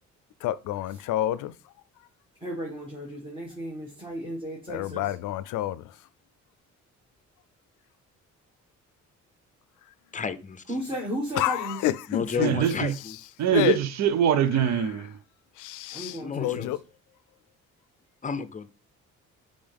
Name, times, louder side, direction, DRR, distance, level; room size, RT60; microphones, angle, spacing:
voice 1, 0.4-1.5 4.7-5.8 11.4-12.6 13.5-13.8 15.6-16.8, left 13 dB, 80° left, 0.5 m, -28 dB
voice 2, 2.4-5.1 10.7-11.8 15.9-16.7, equal, 15° right, 1.7 m, -35 dB
voice 3, 10.1-10.7 12.1-13.2 16.2-16.7 18.2-18.7, left 5 dB, 25° left, 0.6 m, -32 dB
voice 4, 12.4-12.9 13.4-15.2, right 9 dB, 65° right, 0.6 m, -23 dB
5.4 x 5.0 x 3.5 m
cardioid pair, 90°, 30 cm